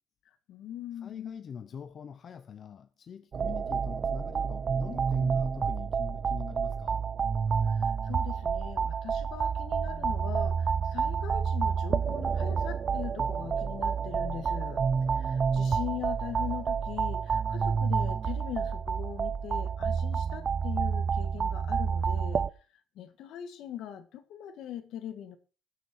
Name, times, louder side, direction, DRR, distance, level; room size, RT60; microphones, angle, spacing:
voice 1, 0.5-1.4 7.6-14.8 15.1-22.5 23.0-25.4, left 10 dB, 60° left, 1.8 m, -41 dB
voice 2, 1.0-7.1, left 7 dB, 35° left, 0.8 m, -44 dB
sound 1, 3.3-22.5, right 6 dB, 30° right, 0.5 m, -29 dB
20.0 x 6.7 x 4.7 m
cardioid pair, 155°, 0 cm